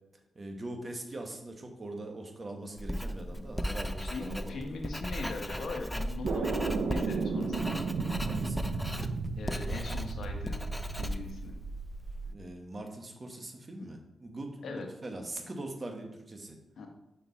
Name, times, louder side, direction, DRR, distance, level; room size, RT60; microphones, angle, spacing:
voice 1, 0.3-4.6 8.2-8.7 12.3-16.6, right 2 dB, 40° right, 3 dB, 1.2 m, -42 dB
Writing, 2.8-12.2, equal, 5° left, 0.5 m, -37 dB
voice 2, 4.0-7.8 9.4-10.6 10.9-11.6 14.6-14.9 16.8-16.9, left 3 dB, 85° left, 3 dB, 1.0 m, -40 dB
sound 1, 6.2-12.3, right 4 dB, 85° right, 0.5 m, -34 dB
5.5 x 4.5 x 4.1 m, 1.0 s
cardioid pair, 60°, 0 cm